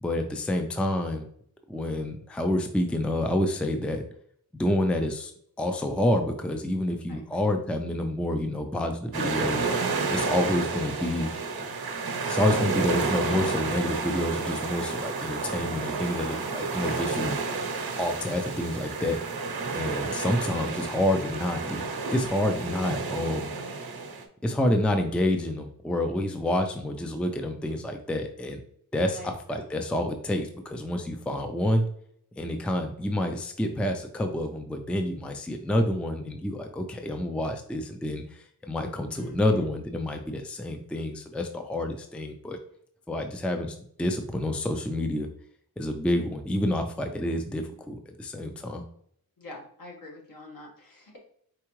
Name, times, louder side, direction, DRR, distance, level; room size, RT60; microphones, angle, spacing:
voice 1, 0.0-1.3 1.7-4.0 4.6-5.3 5.6-9.7 10.1-11.3 12.2-17.3 18.0-19.2 19.7-23.5 24.4-28.6 28.9-31.8 32.4-42.6 43.1-45.3 45.8-48.8, left 1 dB, 5° left, 5 dB, 0.4 m, -28 dB
voice 2, 7.1-7.4 16.8-17.0 29.1-29.7 39.1-39.7 49.4-51.2, left 2 dB, 65° left, -1 dB, 1.6 m, -46 dB
sound 1, 9.1-24.2, right 4 dB, 85° right, 0.9 m, -30 dB
4.8 x 3.5 x 3.0 m, 0.66 s
wide cardioid pair, 125°, 36 cm